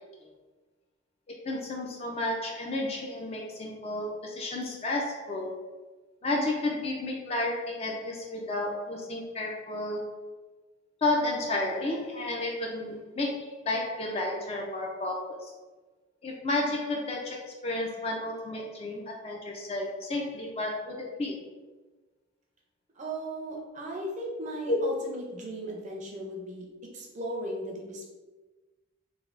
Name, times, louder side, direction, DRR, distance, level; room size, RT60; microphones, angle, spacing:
voice 1, 1.3-5.5 6.2-10.0 11.0-15.5 16.2-21.3 24.7-24.8, left 2 dB, 30° left, -1 dB, 0.3 m, -32 dB
voice 2, 23.0-26.7 26.9-28.0, right 1 dB, 35° right, -1 dB, 0.5 m, -36 dB
3.3 x 2.2 x 2.4 m, 1.2 s
head